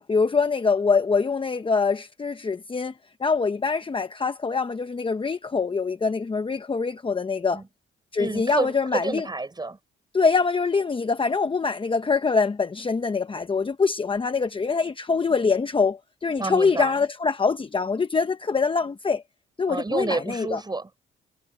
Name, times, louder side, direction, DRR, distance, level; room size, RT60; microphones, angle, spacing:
voice 1, 0.0-2.9 3.2-7.6 8.1-9.3 10.1-19.2 19.6-20.6, left 4 dB, 25° left, 1.1 m, -24 dB
voice 2, 8.2-9.8 16.4-16.9 19.7-21.0, right 3 dB, 20° right, 6.3 m, -29 dB
cardioid pair, 90°, 20 cm